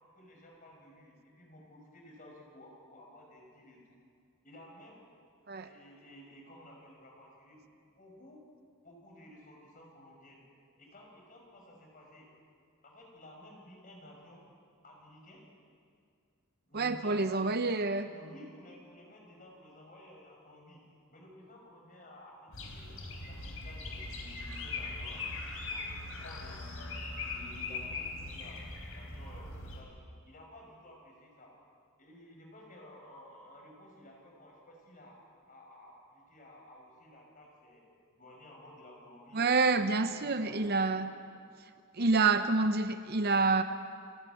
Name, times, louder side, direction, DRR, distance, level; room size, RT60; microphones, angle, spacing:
voice 1, 0.1-3.9 4.4-4.9 5.6-7.7 8.0-8.4 8.8-10.4 10.8-12.3 12.8-14.4 14.8-15.5 16.7-17.7 18.1-20.8 21.1-22.9 23.3-25.2 25.7-28.6 28.9-31.5 32.0-35.2 35.5-37.8 38.1-39.5 39.7-40.5 40.9-41.0 42.0-42.2, left 1 dB, 35° left, 0 dB, 5.8 m, -54 dB
voice 2, 16.7-18.1 39.3-41.1 41.9-43.6, right 3 dB, 45° right, 10 dB, 0.7 m, -28 dB
sound 1, 22.5-29.8, left 3 dB, 70° left, 4.0 m, -40 dB
29.5 x 11.5 x 9.4 m, 2.2 s
head